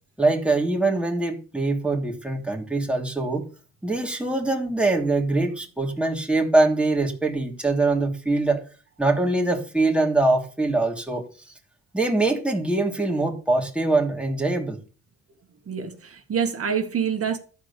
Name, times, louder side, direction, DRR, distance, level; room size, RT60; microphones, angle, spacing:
voice 1, 0.2-3.5 3.8-8.6 9.0-11.3 11.9-14.8, right 2 dB, 5° right, 3.0 m, -23 dB
voice 2, 15.7-17.4, right 7 dB, 50° right, 2.0 m, -26 dB
13.5 x 4.9 x 8.5 m
cardioid pair, 90°, 30 cm